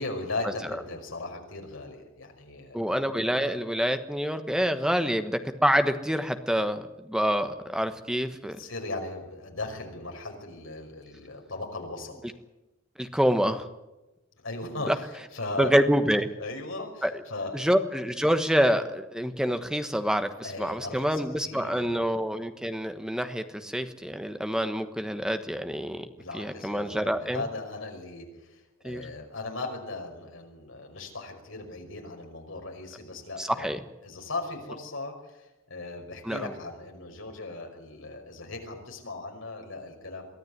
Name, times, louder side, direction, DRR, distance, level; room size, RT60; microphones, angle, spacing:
voice 1, 0.0-2.8 8.6-12.2 14.4-15.7 16.4-17.6 20.4-22.0 26.2-33.7 34.0-40.3, left 2 dB, 70° left, 3 dB, 5.5 m, -38 dB
voice 2, 2.7-8.6 13.0-13.7 14.9-15.0 15.6-16.3 17.0-17.1 17.5-26.1 26.3-27.4 28.8-29.0 33.4-33.8 36.2-36.5, equal, 5° right, 8 dB, 1.2 m, -27 dB
23.5 x 14.5 x 9.5 m, 1.0 s
head